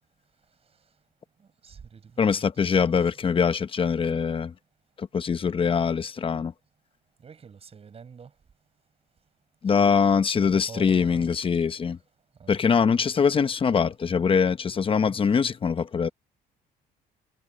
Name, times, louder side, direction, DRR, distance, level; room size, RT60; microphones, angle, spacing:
voice 1, 1.4-2.5 7.2-8.3 9.7-10.0 10.4-11.3 12.4-13.0 14.9-15.2, right 6 dB, 35° right, 7.8 m, -46 dB
voice 2, 2.2-4.5 5.0-6.5 9.6-12.0 12.5-16.1, left 6 dB, 30° left, 1.0 m, -23 dB
cardioid pair, 110°, 17 cm